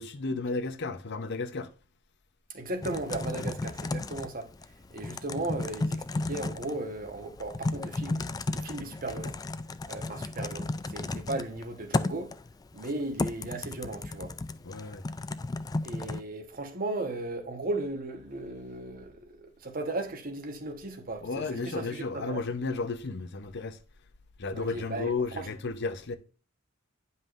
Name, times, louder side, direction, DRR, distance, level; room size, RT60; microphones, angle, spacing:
voice 1, 0.0-1.7 3.3-3.5 14.6-15.0 21.2-23.8 24.4-26.2, left 3 dB, 55° left, 0.7 m, -33 dB
voice 2, 2.5-4.5 4.9-9.4 9.9-12.3 12.7-14.3 15.8-22.4 24.5-25.5, right 2 dB, 45° right, 1.1 m, -36 dB
Typing, 2.8-16.2, left 2 dB, 20° left, 0.3 m, -34 dB
9.5 x 5.5 x 2.5 m
head